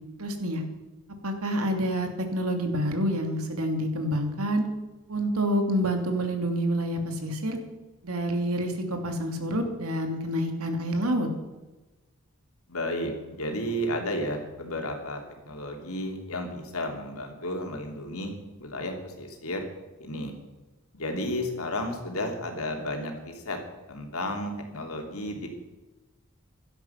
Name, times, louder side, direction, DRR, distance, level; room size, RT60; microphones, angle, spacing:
voice 1, 0.2-0.6 1.2-4.7 5.1-7.6 8.0-11.3, equal, 90° right, 5 dB, 2.8 m, -28 dB
voice 2, 12.7-15.2 15.4-18.3 18.6-19.6 20.0-20.3 20.9-23.6 23.9-25.5, left 1 dB, 85° left, 3 dB, 3.3 m, -32 dB
16.5 x 12.5 x 5.9 m, 1.1 s
head